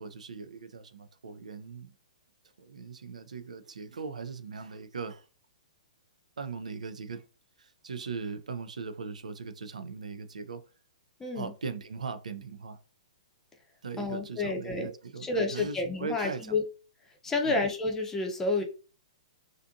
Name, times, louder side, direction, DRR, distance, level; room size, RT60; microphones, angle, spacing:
voice 1, 0.0-1.9 2.6-5.3 6.4-7.3 7.6-10.6 11.3-12.8 13.8-16.6 17.4-17.6, right 5 dB, 80° right, 0.4 m, -39 dB
voice 2, 11.2-11.5 14.0-14.9 15.2-16.6 17.2-18.6, left 3 dB, 10° left, 0.5 m, -30 dB
2.5 x 2.4 x 2.5 m
hypercardioid pair, 125°, 4 cm